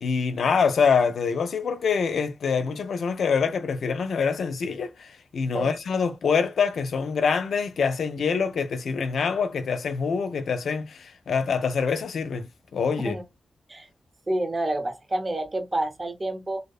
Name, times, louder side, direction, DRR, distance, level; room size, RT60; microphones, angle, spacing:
voice 1, 0.0-12.5 12.7-13.2, left 5 dB, 80° left, 0.3 m, -25 dB
voice 2, 14.3-16.6, right 1 dB, 40° right, 0.7 m, -28 dB
2.6 x 2.1 x 2.3 m
supercardioid pair, 40°, 0 cm